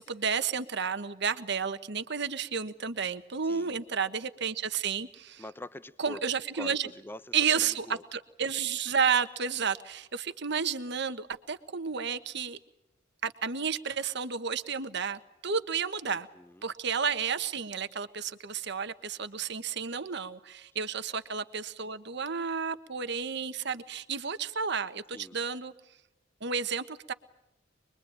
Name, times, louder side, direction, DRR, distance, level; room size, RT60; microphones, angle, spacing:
voice 1, 0.0-5.4 6.0-6.9 7.3-12.6 13.2-16.3 16.6-25.7 26.4-27.1, right 6 dB, 65° right, 10 dB, 1.3 m, -31 dB
voice 2, 3.4-3.8 5.4-6.2 6.6-8.0 16.0-16.7 25.1-25.4, left 1 dB, 10° left, 13 dB, 0.9 m, -45 dB
25.0 x 22.5 x 8.9 m, 0.86 s
head